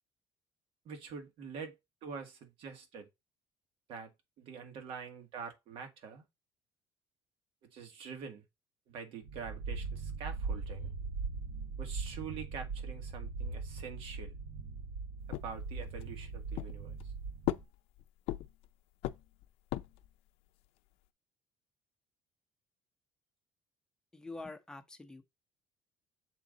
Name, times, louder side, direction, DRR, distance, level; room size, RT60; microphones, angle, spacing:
voice 1, 0.9-3.1 3.9-4.1 4.4-6.2 7.7-8.4 8.9-10.9 11.8-14.4 15.3-16.9, right 6 dB, 70° right, 1.9 m, -45 dB
sound 1, 9.2-17.6, right 4 dB, 85° right, 1.1 m, -40 dB
sound 2, 15.3-16.1 16.6-17.1 17.4-18.7 19.0-20.1, left 16 dB, 80° left, 0.5 m, -37 dB
voice 2, 24.1-25.2, left 2 dB, 5° left, 0.8 m, -46 dB
7.1 x 3.8 x 4.0 m
cardioid pair, 140°, 10 cm